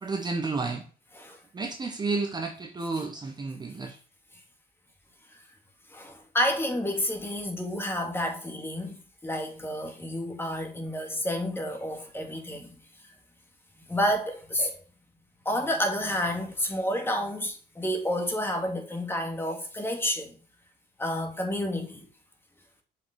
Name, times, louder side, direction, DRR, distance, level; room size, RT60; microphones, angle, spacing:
voice 1, 0.0-0.8 1.5-3.9, right 3 dB, 25° right, 1.1 m, -31 dB
voice 2, 5.9-12.7 13.9-14.8 15.5-20.3 21.0-22.1, equal, 15° left, 2.1 m, -30 dB
7.1 x 5.5 x 3.8 m
cardioid pair, 110°, 17 cm